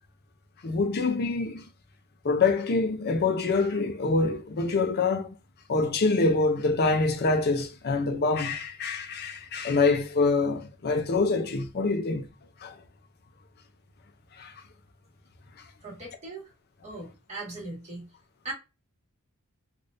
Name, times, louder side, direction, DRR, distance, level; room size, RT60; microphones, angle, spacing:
voice 1, 0.6-1.6 2.2-5.3 5.7-12.3 12.6-12.8 14.4-14.5, left 3 dB, 50° left, 0.5 m, -25 dB
voice 2, 15.8-16.5 16.8-18.1 18.4-18.5, right 2 dB, 30° right, 1.5 m, -39 dB
3.4 x 2.5 x 2.6 m
head